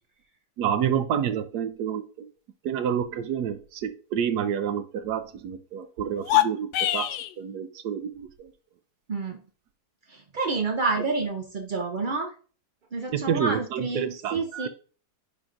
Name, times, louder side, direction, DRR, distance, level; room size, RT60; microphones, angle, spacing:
voice 1, 0.6-2.3 2.6-7.1 7.4-8.5 13.1-14.7, right 8 dB, 80° right, 10 dB, 1.2 m, -29 dB
sound 1, 6.1-7.3, left 14 dB, 80° left, 1.2 m, -24 dB
voice 2, 10.1-12.3 12.9-14.7, right 3 dB, 50° right, 3 dB, 0.5 m, -29 dB
9.9 x 5.7 x 2.5 m, 0.40 s
omnidirectional pair, 1.7 m